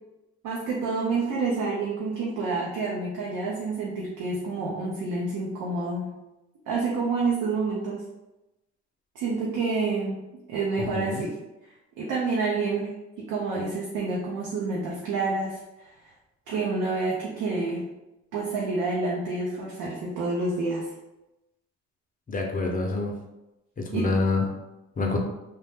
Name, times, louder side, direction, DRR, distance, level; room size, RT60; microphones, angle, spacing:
voice 1, 0.4-6.1 6.7-8.0 9.1-10.2 10.5-11.3 12.0-12.9 13.2-15.9 16.5-17.8 18.3-20.9 23.9-24.1, right 3 dB, 90° right, -4 dB, 0.7 m, -28 dB
voice 2, 10.8-11.2 22.3-23.1 23.8-24.4 25.0-25.2, left 3 dB, 30° left, 1 dB, 0.6 m, -26 dB
2.8 x 2.1 x 3.4 m, 0.96 s
cardioid pair, 90°, 30 cm